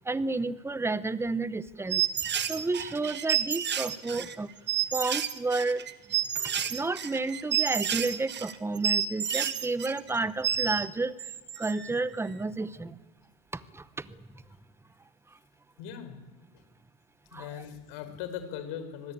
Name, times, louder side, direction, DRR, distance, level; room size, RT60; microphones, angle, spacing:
voice 1, 0.1-2.0 2.5-4.5 4.9-5.9 6.3-11.3 11.6-13.0 13.5-14.1 17.3-17.5, right 3 dB, 5° right, 16 dB, 0.8 m, -31 dB
sound 1, 1.9-10.9 11.2-12.0, right 9 dB, 25° right, 1.4 m, -30 dB
voice 2, 15.8-16.2 17.3-19.1, left 9 dB, 60° left, 9 dB, 4.9 m, -39 dB
25.5 x 20.0 x 8.7 m, 1.2 s
supercardioid pair, 125°, 44 cm